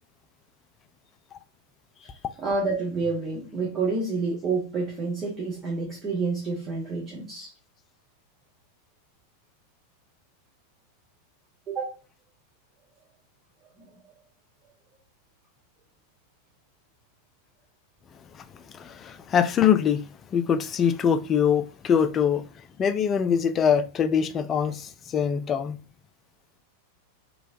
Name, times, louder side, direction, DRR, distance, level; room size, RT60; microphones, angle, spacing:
voice 1, 2.4-7.5 11.7-12.0, right 4 dB, 25° right, 1.1 m, -28 dB
voice 2, 18.7-20.0 20.3-22.4 22.8-25.8, left 8 dB, 25° left, 0.3 m, -23 dB
3.1 x 3.0 x 2.6 m
figure-of-eight pair, 90°, 0 cm